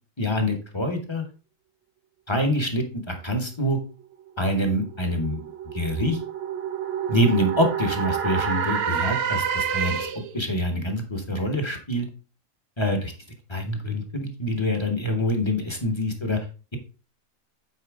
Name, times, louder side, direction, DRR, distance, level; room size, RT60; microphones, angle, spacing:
voice 1, 0.2-1.2 2.3-3.8 4.4-5.5 5.7-6.2 7.1-10.1 10.3-12.1 12.8-13.1 13.5-16.4, equal, 20° left, 4 dB, 1.0 m, -25 dB
sound 1, 4.3-10.4, right 7 dB, 55° right, 0.8 m, -28 dB
8.5 x 4.5 x 3.6 m, 0.35 s
omnidirectional pair, 1.5 m